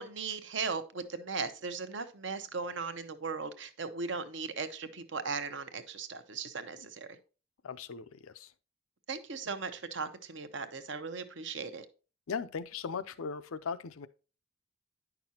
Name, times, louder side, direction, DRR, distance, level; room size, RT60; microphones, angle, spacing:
voice 1, 0.0-7.1 9.1-11.8, right 4 dB, 60° right, 0.7 m, -38 dB
voice 2, 7.6-8.5 12.3-14.1, left 5 dB, 90° left, 0.5 m, -38 dB
9.3 x 6.0 x 2.8 m
head